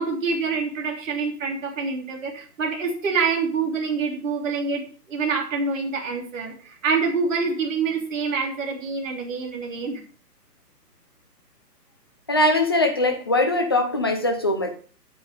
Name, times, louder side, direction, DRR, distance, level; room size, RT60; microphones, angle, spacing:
voice 1, 0.0-10.0, right 4 dB, 50° right, 3.5 m, -26 dB
voice 2, 12.3-14.8, left 1 dB, 15° left, 0.5 m, -21 dB
8.7 x 8.4 x 5.3 m
figure-of-eight pair, 145°, 49 cm